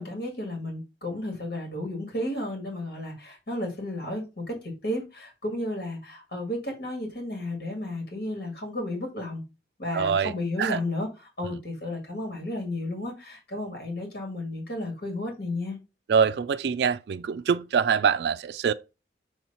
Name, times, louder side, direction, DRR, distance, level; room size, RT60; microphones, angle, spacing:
voice 1, 0.0-9.4 9.8-15.8, left 1 dB, 70° left, 2.0 m, -33 dB
voice 2, 9.9-10.3 10.6-10.8 16.1-18.7, right 6 dB, 65° right, 0.3 m, -24 dB
6.3 x 3.0 x 5.4 m
head